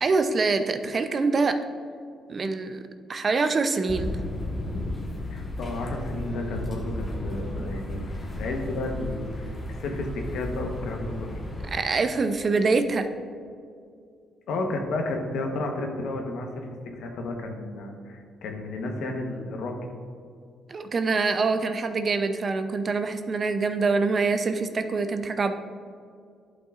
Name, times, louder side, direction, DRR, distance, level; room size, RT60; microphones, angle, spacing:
voice 1, 0.0-1.6 2.3-2.8 3.1-4.1 11.7-13.1 20.7-25.5, right 4 dB, 40° right, 8 dB, 0.6 m, -25 dB
sound 1, 3.9-11.7, left 1 dB, 30° left, 1.4 m, -34 dB
voice 2, 5.3-11.3 14.5-16.7 17.0-19.7, left 2 dB, 80° left, 2 dB, 1.1 m, -32 dB
11.5 x 5.5 x 2.5 m, 2.3 s
cardioid pair, 90°, 0 cm